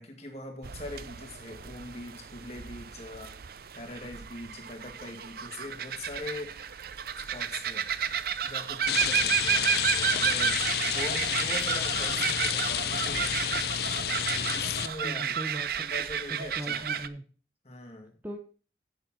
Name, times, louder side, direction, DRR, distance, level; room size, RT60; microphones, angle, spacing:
voice 1, 0.0-3.4 3.7-6.6 7.2-8.2 8.4-13.4 14.3-15.4 15.7-17.0 17.6-18.2, left 2 dB, 35° left, 3 dB, 2.1 m, -42 dB
sound 1, 0.6-17.1, right 8 dB, 55° right, 0.5 m, -32 dB
Rain, 8.9-14.9, left 10 dB, 60° left, 0.5 m, -30 dB
voice 2, 14.8-15.9 16.3-17.2 18.2-18.4, equal, 10° right, 3 dB, 0.9 m, -39 dB
8.1 x 7.2 x 5.6 m, 0.38 s
head